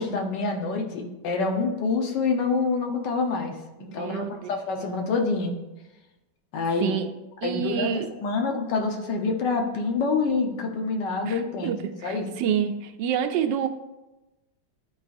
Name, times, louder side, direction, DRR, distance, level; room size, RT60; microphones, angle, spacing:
voice 1, 0.0-3.5 3.8-5.6 6.5-6.9 7.4-7.9 8.2-11.7 12.0-12.3, left 4 dB, 75° left, 3 dB, 1.5 m, -26 dB
voice 2, 3.9-5.1 6.8-7.1 7.4-8.1 11.2-13.7, right 8 dB, 85° right, 7 dB, 1.3 m, -28 dB
11.0 x 4.0 x 2.5 m, 1.0 s
omnidirectional pair, 1.9 m